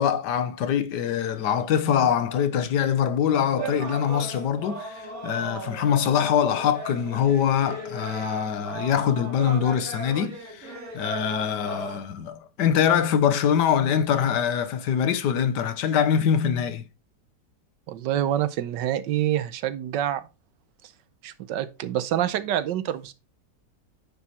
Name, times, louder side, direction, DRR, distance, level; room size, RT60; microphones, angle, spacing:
voice 1, 0.0-16.8, left 8 dB, 75° left, 1.5 m, -24 dB
sound 1, 3.6-12.0, right 1 dB, 55° right, 2.4 m, -36 dB
voice 2, 17.9-20.2 21.2-23.1, right 11 dB, 90° right, 1.4 m, -26 dB
9.8 x 4.7 x 4.2 m
omnidirectional pair, 1.8 m